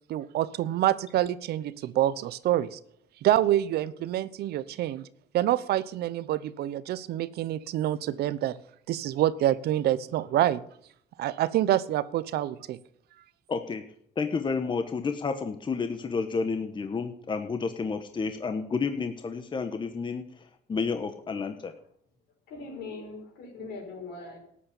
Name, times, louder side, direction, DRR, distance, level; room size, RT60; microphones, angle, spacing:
voice 1, 0.1-2.8 3.2-5.0 5.3-8.6 8.9-10.6 11.2-12.8, right 13 dB, 70° right, 17 dB, 0.8 m, -26 dB
voice 2, 13.5-13.8 14.2-21.7, left 5 dB, 30° left, 8 dB, 1.2 m, -31 dB
voice 3, 22.5-24.4, left 3 dB, 70° left, 2 dB, 5.5 m, -41 dB
13.0 x 8.6 x 7.1 m, 0.67 s
cardioid pair, 110°, 17 cm